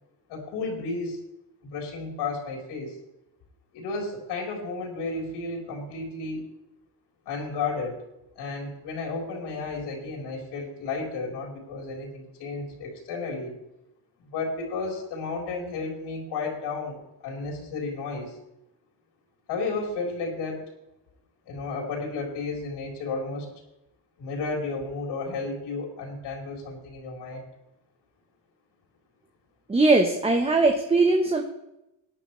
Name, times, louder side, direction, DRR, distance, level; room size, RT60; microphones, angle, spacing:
voice 1, 0.3-1.2 1.6-3.0 3.7-6.4 7.3-8.0 8.4-13.5 14.2-18.4 19.5-20.6 21.5-23.5 24.2-27.5, left 3 dB, 80° left, 0 dB, 4.0 m, -33 dB
voice 2, 29.7-31.4, right 3 dB, 15° right, 4 dB, 1.0 m, -20 dB
18.5 x 10.5 x 3.2 m, 0.90 s
cardioid pair, 135°, 40 cm